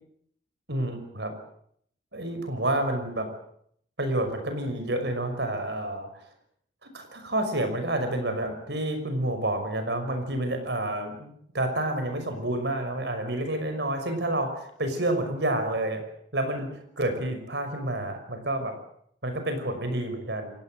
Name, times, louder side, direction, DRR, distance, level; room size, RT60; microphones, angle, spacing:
voice 1, 0.7-1.3 2.1-3.3 4.0-6.1 6.8-16.0 16.3-18.7 19.2-20.5, right 1 dB, 70° right, 7 dB, 5.9 m, -29 dB
29.5 x 17.5 x 7.8 m, 0.67 s
head